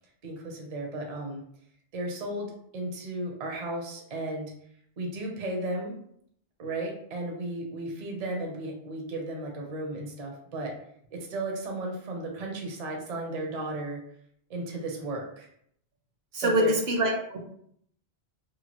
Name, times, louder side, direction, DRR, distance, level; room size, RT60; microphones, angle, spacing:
voice 1, 0.2-1.4 1.9-4.5 5.0-5.9 6.6-10.7 11.1-14.0 14.5-15.5 16.3-16.8, right 2 dB, 45° right, 1 dB, 0.6 m, -34 dB
voice 2, 16.3-17.4, right 1 dB, 70° right, 1 dB, 0.9 m, -25 dB
2.8 x 2.2 x 2.9 m, 0.68 s
omnidirectional pair, 1.1 m